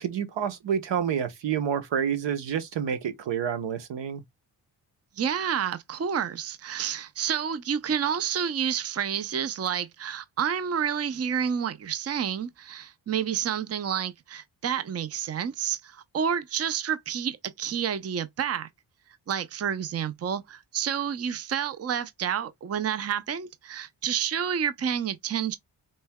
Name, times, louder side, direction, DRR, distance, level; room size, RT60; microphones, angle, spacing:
voice 1, 0.0-4.2, right 8 dB, 75° right, 0.9 m, -28 dB
voice 2, 5.2-18.7 19.3-25.6, right 8 dB, 35° right, 0.6 m, -29 dB
5.3 x 3.1 x 2.2 m
supercardioid pair, 45°, 45 cm